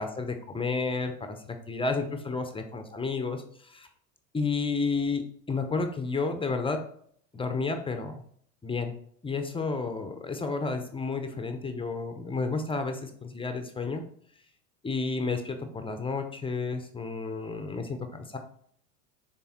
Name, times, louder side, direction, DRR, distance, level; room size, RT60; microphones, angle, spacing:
voice 1, 0.0-3.9 4.3-6.9 7.3-8.2 8.6-8.9 9.2-14.0 14.8-18.4, left 4 dB, 10° left, 6 dB, 0.6 m, -31 dB
6.9 x 3.4 x 4.3 m, 0.63 s
hypercardioid pair, 90°, 47 cm